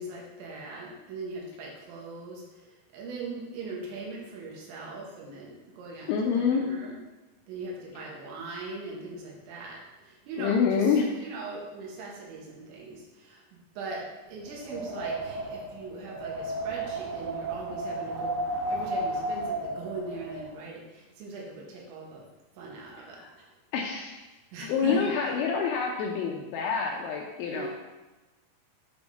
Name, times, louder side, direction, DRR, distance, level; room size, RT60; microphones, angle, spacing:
voice 1, 0.0-2.7 2.9-6.1 6.3-7.0 7.5-10.9 11.2-18.3 18.7-22.2 22.6-23.5 24.5-25.1 27.5-27.7, right 3 dB, 75° right, -2 dB, 3.4 m, -40 dB
voice 2, 6.1-6.7 10.4-11.1 23.0-23.3 23.7-24.2 24.7-27.7, left 6 dB, 80° left, 0 dB, 2.7 m, -27 dB
Wind, 14.4-20.4, right 1 dB, 45° right, 2.0 m, -33 dB
9.8 x 3.5 x 4.0 m, 1.1 s
omnidirectional pair, 5.8 m